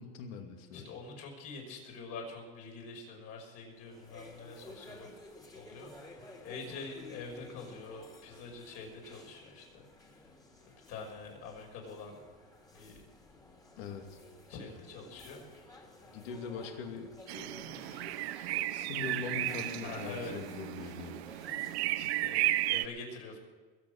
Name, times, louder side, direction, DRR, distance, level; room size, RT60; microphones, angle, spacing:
voice 1, 0.0-0.9 13.8-14.2 16.1-21.2, left 6 dB, 75° left, 4 dB, 2.6 m, -43 dB
voice 2, 0.7-5.1 5.5-9.8 10.9-12.2 12.7-13.0 14.5-15.5 19.8-20.3 21.9-23.4, left 4 dB, 55° left, 1 dB, 5.8 m, -45 dB
sound 1, 3.7-22.2, left 2 dB, 10° left, 2.6 m, -54 dB
sound 2, 17.3-22.8, right 16 dB, 85° right, 0.7 m, -34 dB
21.5 x 8.9 x 6.5 m, 1.4 s
supercardioid pair, 130°, 31 cm